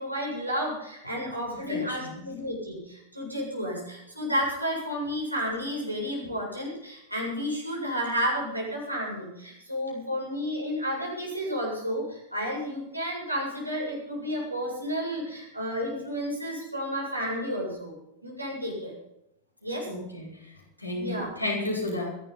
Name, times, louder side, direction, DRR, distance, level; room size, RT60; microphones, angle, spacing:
voice 1, 0.0-17.9 18.2-18.9 19.6-19.9 21.0-21.3, equal, 85° right, -3 dB, 7.7 m, -31 dB
voice 2, 1.7-2.2 19.9-20.5 20.8-22.1, left 2 dB, 90° left, -3 dB, 5.5 m, -32 dB
24.5 x 12.0 x 4.3 m, 0.85 s
figure-of-eight pair, 90°, 0 cm